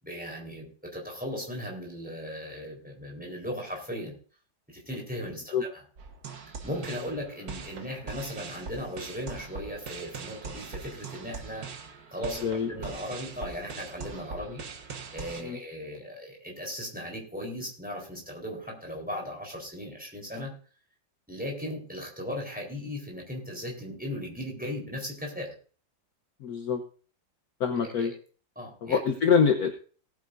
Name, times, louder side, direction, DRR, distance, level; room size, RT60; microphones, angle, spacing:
voice 1, 0.0-4.1 4.7-5.7 6.6-11.7 12.1-14.6 15.1-20.5 21.3-25.5 27.8-28.1 28.6-29.0, equal, 5° right, 0 dB, 4.0 m, -37 dB
sound 1, 6.0-15.4, right 5 dB, 55° right, 1.6 m, -42 dB
voice 2, 26.4-26.8 27.6-28.1 28.8-29.8, left 6 dB, 60° left, 5 dB, 1.3 m, -25 dB
18.5 x 9.2 x 2.6 m, 0.40 s
omnidirectional pair, 2.1 m